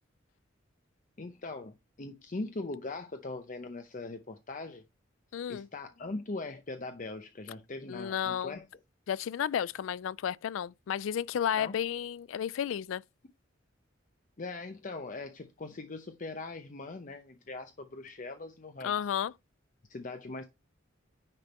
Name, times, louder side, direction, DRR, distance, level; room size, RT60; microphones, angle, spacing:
voice 1, 1.2-4.8 5.5-8.7 11.6-11.8 14.4-19.0 19.9-20.5, left 3 dB, 40° left, 0.7 m, -41 dB
voice 2, 5.3-5.7 7.9-8.6 9.1-13.0 18.8-19.3, left 9 dB, 85° left, 0.3 m, -32 dB
9.8 x 3.5 x 4.2 m
head